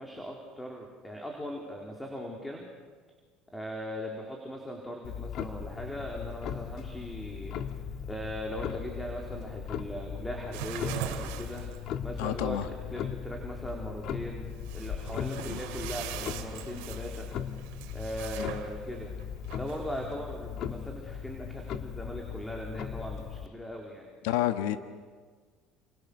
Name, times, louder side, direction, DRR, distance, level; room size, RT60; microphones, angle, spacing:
voice 1, 0.0-2.7 3.5-7.6 8.1-11.6 12.0-14.5 14.7-17.3 17.9-19.1 19.6-24.1, equal, 5° left, 0 dB, 3.9 m, -39 dB
Clock, 5.0-23.5, left 8 dB, 55° left, 1.9 m, -38 dB
sound 1, 10.5-21.7, right 12 dB, 90° right, 2.7 m, -43 dB
voice 2, 12.2-12.7 15.5-15.6 24.2-24.8, left 13 dB, 90° left, 9 dB, 1.4 m, -29 dB
30.0 x 28.0 x 6.8 m, 1.5 s
cardioid pair, 130°, 0 cm